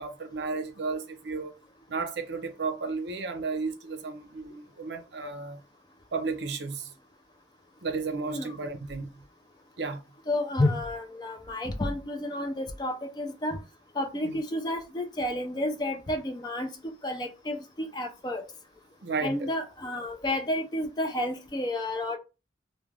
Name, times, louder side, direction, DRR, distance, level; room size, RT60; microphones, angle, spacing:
voice 1, 0.0-1.6 1.9-5.6 6.1-6.9 7.8-9.2 9.8-10.0 11.5-11.6 14.2-14.4 19.0-19.5, right 4 dB, 70° right, 0.5 m, -33 dB
voice 2, 10.3-13.6 14.0-16.7 17.0-18.4 19.2-22.2, left 1 dB, 25° left, 0.4 m, -31 dB
2.4 x 2.1 x 3.1 m
head